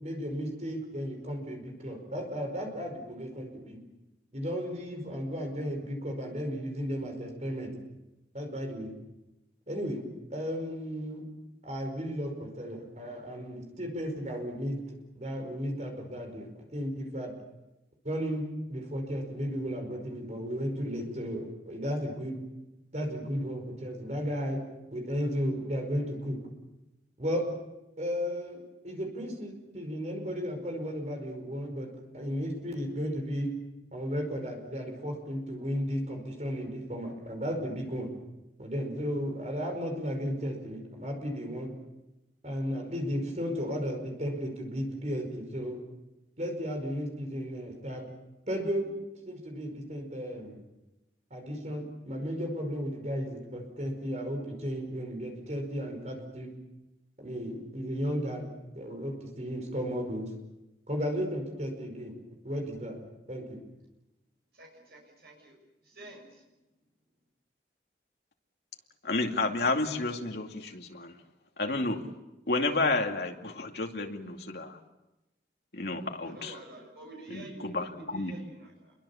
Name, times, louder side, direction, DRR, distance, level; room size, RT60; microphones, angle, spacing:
voice 1, 0.0-3.8 4.3-7.7 8.3-8.9 9.7-10.0 10.3-11.3 11.6-14.8 15.2-17.3 18.0-22.4 22.9-24.6 24.9-26.4 27.2-27.4 28.0-33.6 33.9-38.1 38.6-41.7 42.4-45.8 46.4-48.0 48.5-48.9 49.3-50.6 51.3-56.5 57.2-60.3 60.9-62.2 62.4-63.0 63.3-63.6, equal, 40° right, 3 dB, 5.2 m, -34 dB
voice 2, 64.6-65.6 65.9-66.3 76.2-78.9, right 2 dB, 60° right, -1 dB, 6.9 m, -48 dB
voice 3, 69.0-71.1 71.6-72.0 72.5-74.8 75.7-76.6 77.3-78.4, left 2 dB, 65° left, 2 dB, 2.5 m, -31 dB
28.0 x 23.0 x 7.2 m, 0.99 s
head